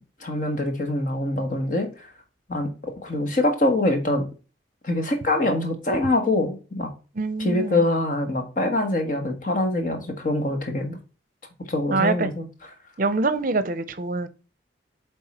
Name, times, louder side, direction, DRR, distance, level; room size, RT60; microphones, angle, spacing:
voice 1, 0.2-2.1 2.5-4.2 4.8-6.9 7.4-11.0 11.7-12.5, left 2 dB, 40° left, 1.4 m, -24 dB
voice 2, 7.1-7.8 11.9-12.3 13.0-14.3, right 3 dB, 45° right, 0.7 m, -25 dB
7.8 x 3.7 x 4.2 m
head